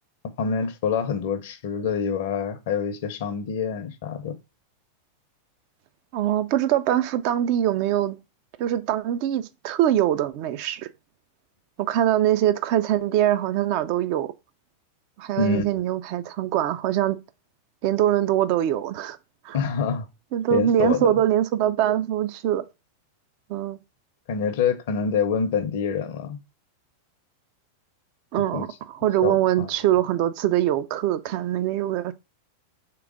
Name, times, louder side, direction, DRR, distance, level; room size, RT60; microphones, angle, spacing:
voice 1, 0.4-4.3 15.4-15.7 19.5-20.1 20.5-21.1 24.3-26.4 28.5-28.7 29.2-29.7, left 6 dB, 55° left, 0.6 m, -26 dB
voice 2, 6.1-8.2 8.6-10.9 11.8-14.3 15.2-17.2 17.8-19.2 19.4-19.6 20.3-22.6 23.5-23.8 28.3-32.1, right 12 dB, 45° right, 0.4 m, -23 dB
3.5 x 3.0 x 4.8 m
figure-of-eight pair, 90°, 0 cm